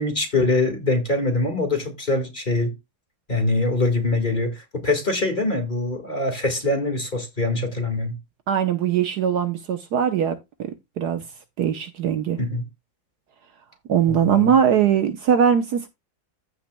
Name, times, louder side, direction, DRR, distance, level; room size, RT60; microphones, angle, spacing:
voice 1, 0.0-2.7 3.3-8.2 12.4-12.6 14.1-14.5, left 2 dB, 25° left, 1.8 m, -23 dB
voice 2, 8.5-10.4 11.0-11.2 11.6-12.4 13.9-15.9, right 8 dB, 65° right, 1.3 m, -20 dB
15.0 x 5.8 x 2.2 m
omnidirectional pair, 2.0 m